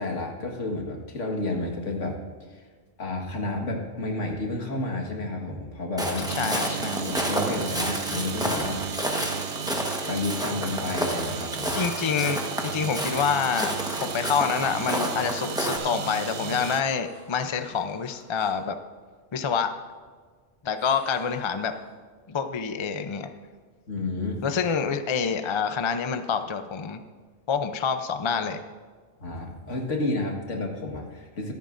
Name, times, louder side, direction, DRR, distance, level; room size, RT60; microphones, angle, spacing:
voice 1, 0.0-2.2 2.5-2.6 3.0-6.3 6.9-8.8 10.1-11.8 23.9-24.4 29.2-31.5, left 2 dB, 80° left, 1 dB, 2.0 m, -31 dB
Walk footsteps, 6.0-15.8, equal, 5° right, 1.1 m, -30 dB
sound 1, 6.3-16.8, right 8 dB, 60° right, 0.8 m, -34 dB
voice 2, 6.4-7.0 11.7-18.8 19.3-19.7 20.6-21.7 22.3-23.3 24.4-27.0 27.5-28.6, left 6 dB, 35° left, 8 dB, 0.5 m, -27 dB
sound 2, 15.7-18.7 20.7-21.9, equal, 25° right, 2.6 m, -51 dB
24.0 x 9.2 x 2.6 m, 1.5 s
omnidirectional pair, 1.2 m